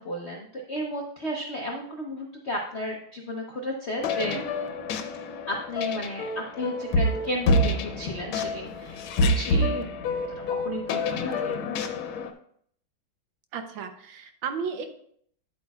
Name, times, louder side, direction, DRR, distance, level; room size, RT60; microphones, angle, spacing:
voice 1, 0.0-4.5 5.5-9.9 10.1-10.2 10.5-11.8, left 1 dB, 60° left, 1 dB, 0.7 m, -33 dB
sound 1, 4.0-12.3, left 1 dB, 85° left, 1.6 m, -27 dB
voice 2, 9.5-9.8 13.5-14.9, right 6 dB, 75° right, 7 dB, 1.5 m, -34 dB
9.5 x 8.2 x 2.3 m, 0.65 s
omnidirectional pair, 2.2 m